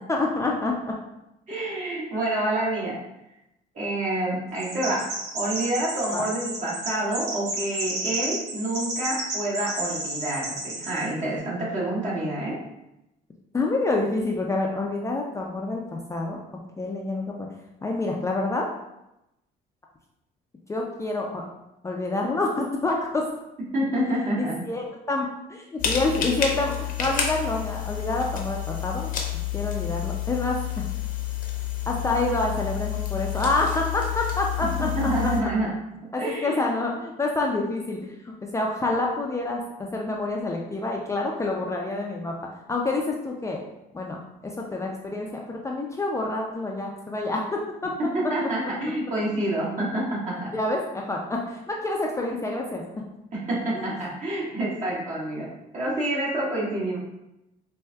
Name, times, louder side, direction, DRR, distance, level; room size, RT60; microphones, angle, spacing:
voice 1, 0.1-0.7 6.1-6.2 13.5-16.4 16.8-17.5 17.8-18.7 20.7-21.4 21.8-23.2 24.4-29.1 29.5-30.8 31.9-35.3 36.1-42.3 42.7-43.6 43.9-47.9 50.5-52.8 53.7-53.9, left 2 dB, 15° left, -1 dB, 0.4 m, -27 dB
voice 2, 1.5-3.0 3.7-12.6 23.7-24.6 34.6-35.7 36.2-36.7 48.0-50.5 53.3-57.0, right 1 dB, 45° right, -6 dB, 1.4 m, -28 dB
Chirp tweet, 4.6-11.1, right 2 dB, 75° right, 1.1 m, -32 dB
sound 1, 25.8-35.4, left 10 dB, 55° left, 0.7 m, -29 dB
4.4 x 2.6 x 2.3 m, 0.90 s
cardioid pair, 110°, 17 cm